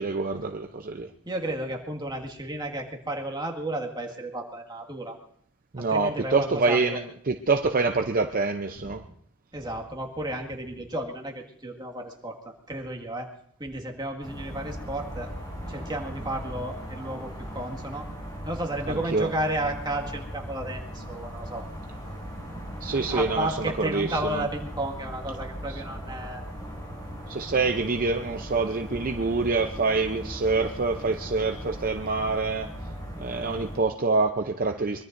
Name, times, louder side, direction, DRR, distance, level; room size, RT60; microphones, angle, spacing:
voice 1, 0.0-1.1 5.7-9.0 18.9-19.3 22.8-24.5 25.7-25.8 27.3-32.7 33.2-35.0, right 3 dB, 40° right, 5 dB, 0.6 m, -26 dB
voice 2, 1.3-5.2 5.8-6.8 9.5-13.3 13.6-15.3 15.7-18.1 18.4-21.7 22.9-26.4, right 1 dB, 20° right, 0 dB, 1.9 m, -33 dB
sound 1, 14.2-33.8, equal, 20° left, 6.4 m, -38 dB
23.5 x 23.0 x 2.6 m, 0.66 s
head